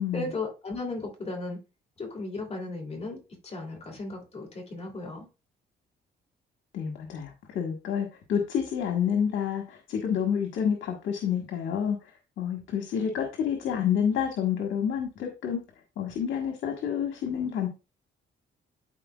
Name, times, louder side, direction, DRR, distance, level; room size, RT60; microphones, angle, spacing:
voice 1, 0.1-1.6 2.0-5.3, left 2 dB, 30° left, 3.1 m, -36 dB
voice 2, 6.7-12.1 12.4-15.6 16.0-17.7, left 8 dB, 80° left, 1.5 m, -29 dB
12.5 x 4.4 x 2.4 m
cardioid pair, 90°, 20 cm